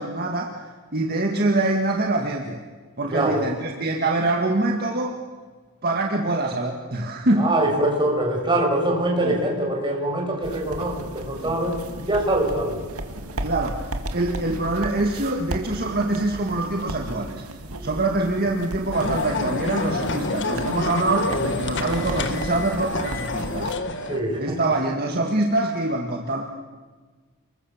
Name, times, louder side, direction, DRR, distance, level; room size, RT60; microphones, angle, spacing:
voice 1, 0.0-2.6 3.0-5.2 5.8-7.5 9.2-9.4 11.4-11.6 13.4-17.4 17.8-23.7 24.4-26.4, right 2 dB, 45° right, 2 dB, 2.0 m, -24 dB
voice 2, 3.1-3.4 7.4-12.8 24.1-24.6, right 1 dB, 20° right, 0 dB, 6.5 m, -23 dB
sound 1, 10.4-23.7, right 1 dB, 75° right, 2.3 m, -35 dB
sound 2, 18.9-24.2, left 3 dB, 55° left, 1.7 m, -28 dB
29.5 x 21.5 x 7.3 m, 1.4 s
head